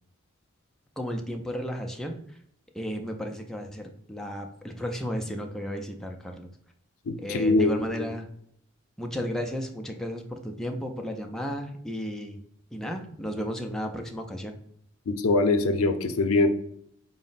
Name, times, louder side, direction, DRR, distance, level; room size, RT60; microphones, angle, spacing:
voice 1, 1.0-2.4 2.7-6.5 7.2-8.3 9.0-12.4 12.7-14.5, equal, ahead, 2 dB, 0.3 m, -34 dB
voice 2, 7.1-8.0 15.2-16.5, left 2 dB, 85° left, 8 dB, 0.5 m, -23 dB
4.2 x 2.0 x 3.9 m, 0.67 s
head